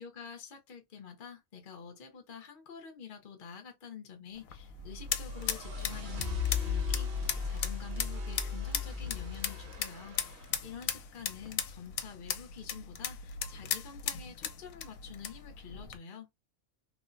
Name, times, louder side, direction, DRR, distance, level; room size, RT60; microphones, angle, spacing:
voice 1, 0.0-16.3, left 7 dB, 50° left, 0.7 m, -48 dB
sound 1, 4.3-16.0, left 8 dB, 75° left, 1.0 m, -38 dB
sound 2, 4.5-10.6, left 5 dB, 50° right, 1.0 m, -37 dB
3.1 x 2.0 x 2.5 m
omnidirectional pair, 1.5 m